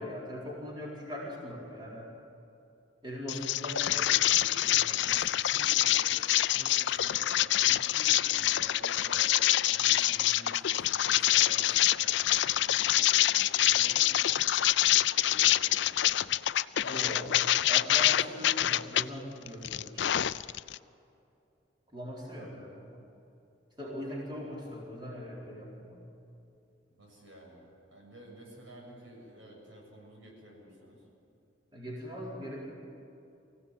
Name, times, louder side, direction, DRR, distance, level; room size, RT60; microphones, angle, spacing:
voice 1, 0.0-2.1 3.0-4.3 16.8-17.4 17.7-20.2 21.9-23.0 23.8-26.1 31.7-32.8, equal, 25° right, -4 dB, 4.4 m, -41 dB
sound 1, 3.3-19.0 19.5-20.8, left 13 dB, 65° left, 0.4 m, -26 dB
voice 2, 4.2-14.5 15.2-16.4 27.0-31.0, equal, 85° right, -1 dB, 6.9 m, -51 dB
24.5 x 16.0 x 9.1 m, 2.7 s
head